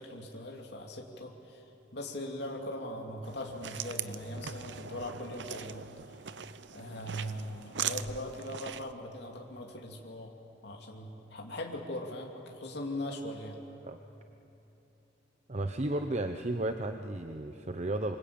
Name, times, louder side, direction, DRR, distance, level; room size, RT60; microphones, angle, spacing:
voice 1, 0.0-1.6 1.9-5.9 6.1-6.2 6.7-10.3 10.6-13.6, left 1 dB, 65° left, 0 dB, 2.9 m, -40 dB
sound 1, 3.2-8.9, right 9 dB, 70° right, 0.8 m, -41 dB
voice 2, 15.5-18.2, right 1 dB, 40° right, 6 dB, 0.9 m, -33 dB
27.0 x 25.0 x 8.8 m, 3.0 s
head